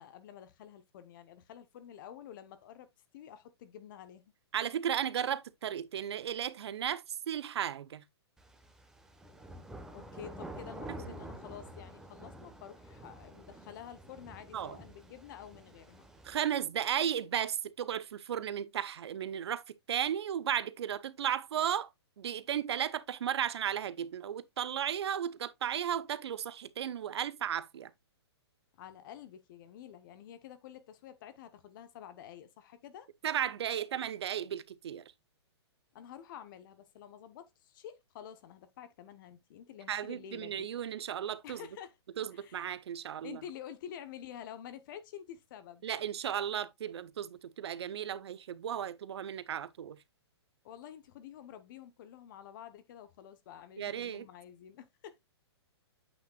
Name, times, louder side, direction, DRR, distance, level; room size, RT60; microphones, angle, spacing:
voice 1, 0.0-2.9 3.1-4.3 9.9-16.1 28.8-33.1 35.9-40.7 41.4-42.0 42.3-42.7 43.2-45.9 50.6-55.2, left 10 dB, 50° left, 1.0 m, -49 dB
voice 2, 4.5-8.0 14.5-14.8 16.2-21.9 22.2-27.9 33.2-35.0 39.9-41.7 42.2-43.4 45.8-50.0 53.8-54.3, right 9 dB, 70° right, 0.8 m, -35 dB
sound 1, 8.4-16.4, right 1 dB, 5° right, 1.2 m, -48 dB
8.6 x 5.7 x 2.4 m
hypercardioid pair, 140°, 14 cm